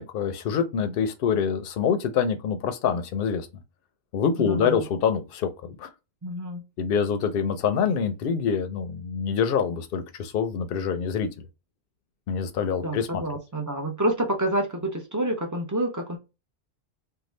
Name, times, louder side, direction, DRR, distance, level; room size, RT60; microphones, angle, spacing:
voice 1, 0.0-3.5 4.1-5.9 6.8-11.3 12.3-13.2, left 7 dB, 60° left, 0.7 m, -26 dB
voice 2, 4.4-4.8 6.2-6.6 12.8-16.2, right 1 dB, 25° right, 0.4 m, -28 dB
2.8 x 2.3 x 3.1 m
omnidirectional pair, 1.2 m